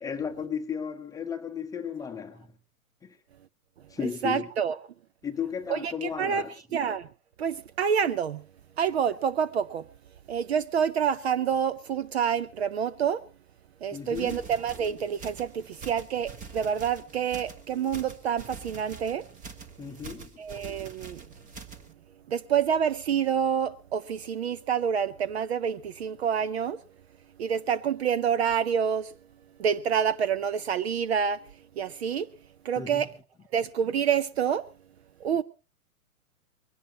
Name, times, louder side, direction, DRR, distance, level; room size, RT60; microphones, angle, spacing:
voice 1, 0.0-2.5 3.0-3.2 3.9-4.5 5.2-6.5 13.9-14.4 19.8-20.3 32.8-33.1, left 7 dB, 10° left, 1.0 m, -34 dB
voice 2, 4.2-4.8 5.7-6.4 6.7-7.1 7.4-8.4 8.8-9.9 10.3-13.2 13.8-19.3 20.4-21.2 22.3-26.8 27.4-29.1 29.6-31.4 31.8-32.3 32.6-33.1 33.5-34.7 35.2-35.4, right 7 dB, 45° right, 0.7 m, -27 dB
sound 1, 13.9-21.9, right 5 dB, 15° right, 1.4 m, -45 dB
22.0 x 17.0 x 2.9 m
figure-of-eight pair, 115°, 45 cm